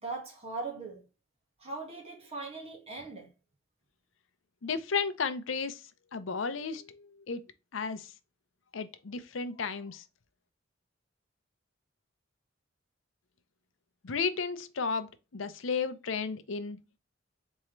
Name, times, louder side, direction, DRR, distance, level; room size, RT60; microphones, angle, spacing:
voice 1, 0.0-1.1 1.6-3.3, right 3 dB, 30° right, 1.6 m, -40 dB
voice 2, 4.6-7.4 7.7-8.1 8.7-10.0 14.0-16.8, left 5 dB, 75° left, 0.6 m, -34 dB
4.3 x 3.6 x 3.1 m
head